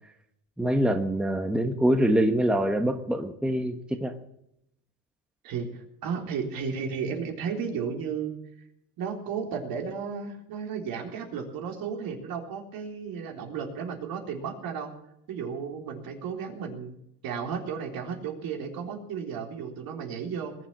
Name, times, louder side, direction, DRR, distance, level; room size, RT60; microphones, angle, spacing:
voice 1, 0.6-4.1, right 1 dB, ahead, 7 dB, 1.1 m, -25 dB
voice 2, 5.4-8.4 9.0-14.9 15.3-17.0 17.2-20.6, right 6 dB, 55° right, 3 dB, 3.8 m, -34 dB
20.5 x 7.6 x 8.6 m, 0.79 s
cardioid pair, 120°, 40 cm